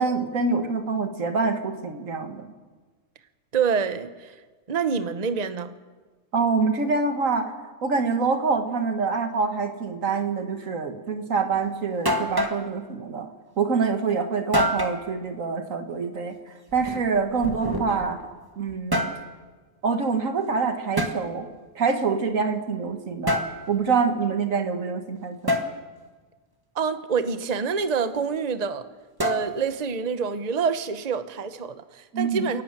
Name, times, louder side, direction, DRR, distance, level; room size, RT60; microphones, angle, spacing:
voice 1, 0.0-2.5 6.3-13.3 13.6-16.3 16.7-18.2 18.6-19.1 19.8-21.5 21.8-25.6 32.1-32.4, right 4 dB, 80° right, 7 dB, 2.0 m, -26 dB
voice 2, 3.5-4.3 4.7-5.7 26.7-28.9 29.2-32.6, right 6 dB, 35° right, 11 dB, 1.0 m, -26 dB
sound 1, 11.6-11.7 12.1-12.6 14.5-15.0 16.7-18.1 18.7-19.2 21.0-21.2 23.3-23.6 25.5-25.7 29.2-29.7, equal, 15° right, 1.6 m, -26 dB
30.0 x 11.5 x 9.0 m, 1.4 s
omnidirectional pair, 1.4 m